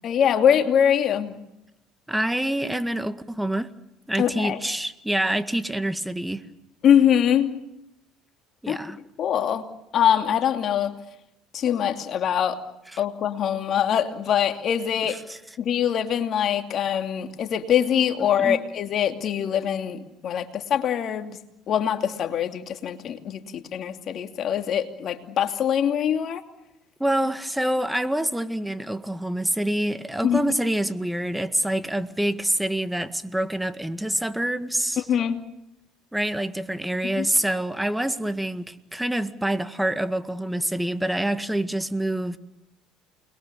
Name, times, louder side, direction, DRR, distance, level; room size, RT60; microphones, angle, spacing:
voice 1, 0.0-1.4 4.2-4.6 6.8-7.5 8.7-8.8 9.2-9.7 9.9-10.9 11.5-12.6 13.0-15.2 15.6-21.4 21.7-26.4 30.2-30.4 35.0-35.4 37.0-37.3, left 9 dB, 50° left, 2.7 m, -23 dB
voice 2, 2.1-3.7 4.1-6.4 8.6-9.0 15.1-15.4 18.4-18.6 27.0-35.0 36.1-42.4, right 1 dB, 5° right, 1.9 m, -26 dB
29.0 x 22.0 x 7.0 m
hypercardioid pair, 75°, 0 cm